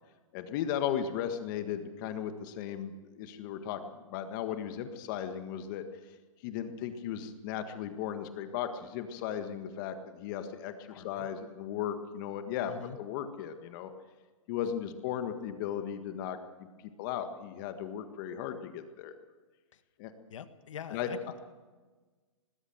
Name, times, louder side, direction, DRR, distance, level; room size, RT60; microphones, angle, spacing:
voice 1, 0.3-3.8 4.1-5.8 6.4-12.7 13.0-13.9 14.5-16.7 17.0-19.1 20.0-20.1 20.9-21.1, left 9 dB, 40° left, 8 dB, 1.7 m, -36 dB
voice 2, 10.9-11.3 12.7-13.0 19.7-19.8 20.3-21.4, left 8 dB, 70° left, 11 dB, 1.8 m, -44 dB
19.5 x 17.5 x 7.9 m, 1.3 s
hypercardioid pair, 140°, 17 cm